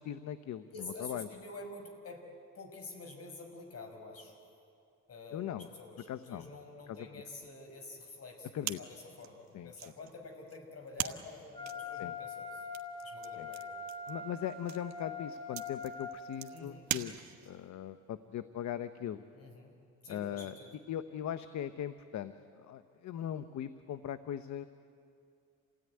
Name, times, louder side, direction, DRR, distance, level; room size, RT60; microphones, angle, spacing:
voice 1, 0.0-1.3 5.3-5.7 6.1-6.5 6.9-7.1 8.5-8.8 9.5-9.7 12.0-12.1 13.4-13.5 14.1-17.1 17.4-19.2 20.1-20.5 20.9-24.7, left 10 dB, 70° left, 11 dB, 0.9 m, -39 dB
voice 2, 0.7-2.2 2.5-4.3 5.1-12.6 13.0-13.7 16.5-16.9 19.3-19.7 20.0-20.7, left 3 dB, 50° left, 4 dB, 5.3 m, -48 dB
sound 1, 8.6-17.7, right 11 dB, 65° right, 1.2 m, -43 dB
Wind instrument woodwind instrument, 11.5-16.2, left 4 dB, 15° left, 3.5 m, -43 dB
28.0 x 16.5 x 9.7 m, 2.4 s
cardioid pair, 90°, 30 cm